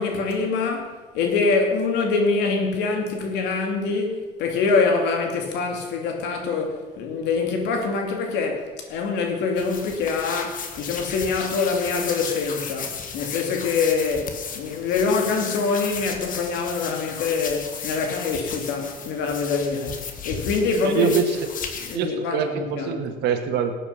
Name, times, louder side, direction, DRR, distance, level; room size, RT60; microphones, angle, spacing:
voice 1, 0.0-21.1 21.8-23.0, left 4 dB, 90° left, 2.7 m, -25 dB
sound 1, 9.5-22.0, left 6 dB, 55° left, 1.8 m, -34 dB
voice 2, 20.8-21.5 21.9-23.8, right 7 dB, 80° right, 1.8 m, -24 dB
18.0 x 9.1 x 5.8 m
cardioid pair, 110°, 17 cm